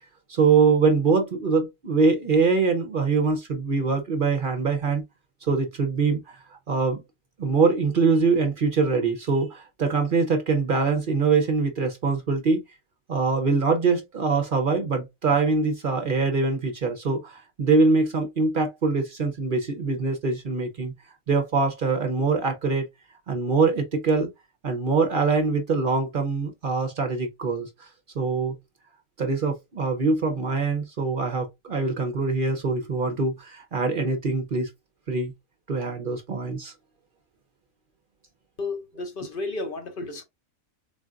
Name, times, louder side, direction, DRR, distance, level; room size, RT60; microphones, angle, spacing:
voice 1, 0.3-5.0 5.4-6.4 6.7-7.0 7.4-12.6 13.1-20.9 21.3-22.9 23.3-24.3 24.6-27.7 28.1-28.5 29.2-34.7 35.1-35.3 35.7-36.7, right 4 dB, 50° right, 0.7 m, -23 dB
voice 2, 38.6-40.2, left 3 dB, 55° left, 0.7 m, -32 dB
3.8 x 3.7 x 2.4 m
omnidirectional pair, 1.5 m